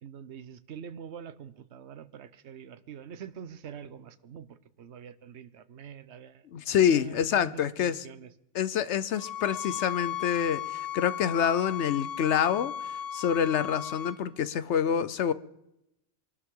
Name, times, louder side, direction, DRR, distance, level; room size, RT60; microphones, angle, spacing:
voice 1, 0.0-8.3, right 8 dB, 65° right, 1.1 m, -45 dB
voice 2, 6.5-8.1 8.5-15.3, left 8 dB, 70° left, 1.0 m, -27 dB
sound 1, 9.2-14.2, left 10 dB, 50° left, 2.1 m, -36 dB
23.5 x 12.5 x 3.8 m
omnidirectional pair, 1.3 m